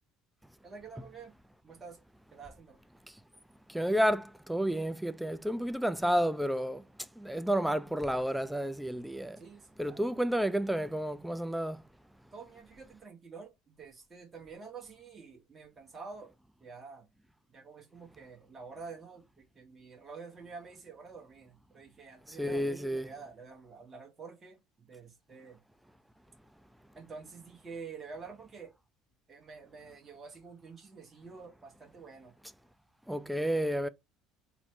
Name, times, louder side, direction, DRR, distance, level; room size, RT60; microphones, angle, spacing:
voice 1, 0.6-1.3 1.6-2.0 2.3-2.8 9.3-10.1 12.3-16.3 16.6-17.1 17.5-25.6 26.9-28.7 29.3-32.3, right 5 dB, 30° right, 1.0 m, -48 dB
voice 2, 3.7-6.8 7.2-9.4 9.8-11.8 22.4-23.1 33.1-33.9, equal, 5° right, 0.3 m, -31 dB
3.0 x 2.0 x 3.0 m
hypercardioid pair, 75°, 0 cm